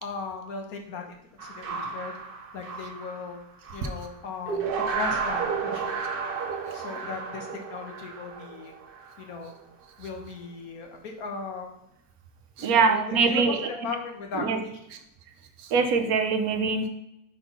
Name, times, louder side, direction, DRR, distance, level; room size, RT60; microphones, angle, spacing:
voice 1, 0.0-1.0 1.4-2.1 2.5-3.4 3.7-6.0 6.7-8.7 9.2-9.5 10.0-11.7 12.6-14.8, left 4 dB, 90° left, 3 dB, 1.5 m, -37 dB
sound 1, 1.4-4.1 4.5-9.6, right 5 dB, 50° right, 0.8 m, -32 dB
voice 2, 12.6-13.9 14.3-14.6 15.7-16.9, right 5 dB, 85° right, 6 dB, 1.3 m, -23 dB
5.1 x 4.3 x 5.4 m, 0.82 s
omnidirectional pair, 1.5 m